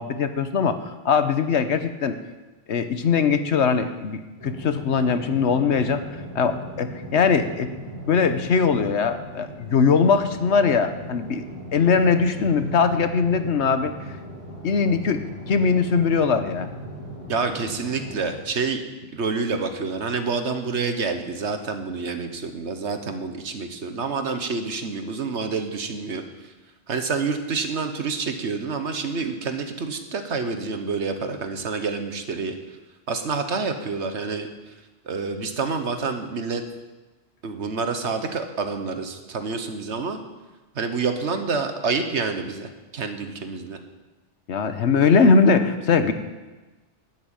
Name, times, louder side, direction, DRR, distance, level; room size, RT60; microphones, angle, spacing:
voice 1, 0.0-2.2 2.7-6.0 6.3-7.7 8.0-11.4 11.7-13.9 14.6-16.7 44.5-46.1, left 5 dB, 70° left, 10 dB, 1.2 m, -21 dB
sound 1, 4.4-18.3, equal, 15° right, 5.0 m, -38 dB
voice 2, 17.3-18.8 19.1-26.5 26.9-32.5 33.1-34.5 35.0-36.6 37.4-40.2 40.7-43.8, right 4 dB, 75° right, 7 dB, 1.5 m, -28 dB
12.5 x 8.2 x 8.9 m, 1.2 s
omnidirectional pair, 1.2 m